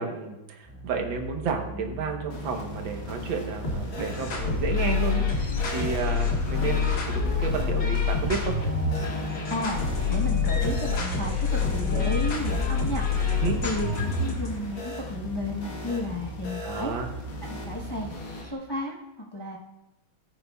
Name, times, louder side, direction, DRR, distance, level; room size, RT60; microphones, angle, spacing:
voice 1, 0.0-8.6 13.3-13.6 16.6-17.1, right 5 dB, 70° right, 3 dB, 1.8 m, -31 dB
sound 1, 0.6-18.5, right 1 dB, 10° left, 0.7 m, -40 dB
sound 2, 2.3-18.4, left 1 dB, 80° left, 2.2 m, -39 dB
sound 3, 3.6-14.5, left 5 dB, 60° left, 2.1 m, -27 dB
voice 2, 9.2-9.8 10.1-16.9 17.5-18.1 18.4-19.6, left 1 dB, 35° left, -3 dB, 0.3 m, -33 dB
15.0 x 8.5 x 2.3 m, 0.94 s
omnidirectional pair, 2.2 m